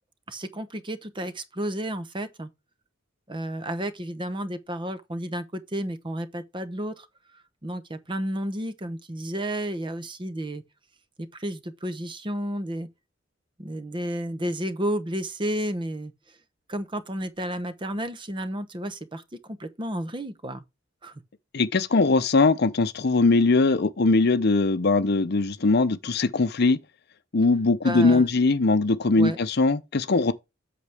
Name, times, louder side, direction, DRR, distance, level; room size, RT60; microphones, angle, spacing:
voice 1, 0.3-2.5 3.3-7.1 7.6-10.6 11.3-12.9 13.6-16.1 16.7-20.6 21.0-21.1 27.8-28.3 29.1-29.4, right 1 dB, 25° right, 0.9 m, -32 dB
voice 2, 21.5-26.8 27.3-30.3, left 3 dB, 55° left, 0.7 m, -21 dB
8.2 x 6.0 x 3.4 m
head